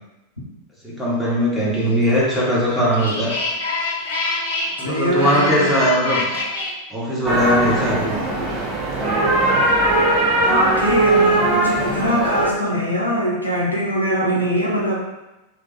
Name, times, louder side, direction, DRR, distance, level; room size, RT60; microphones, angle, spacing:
voice 1, 0.8-3.3 4.8-6.4 6.9-8.6, equal, ahead, -8 dB, 1.1 m, -20 dB
sound 1, 2.0-6.7, left 3 dB, 60° left, 0.9 m, -26 dB
voice 2, 4.8-5.7 10.4-14.9, equal, 85° left, -4 dB, 0.7 m, -22 dB
sound 2, 7.3-12.5, right 2 dB, 20° right, 0.8 m, -19 dB
3.3 x 2.2 x 3.4 m, 1.0 s
figure-of-eight pair, 90°, 0 cm